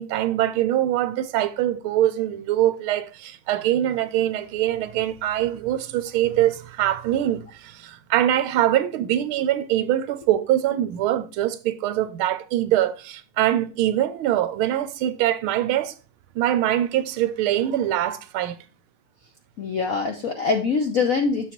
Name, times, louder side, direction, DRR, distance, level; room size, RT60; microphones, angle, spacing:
voice 1, 0.0-15.9 16.3-18.6, right 12 dB, 75° right, 1.4 m, -23 dB
voice 2, 19.6-21.5, left 4 dB, 70° left, 0.8 m, -23 dB
7.5 x 6.8 x 3.0 m
omnidirectional pair, 2.4 m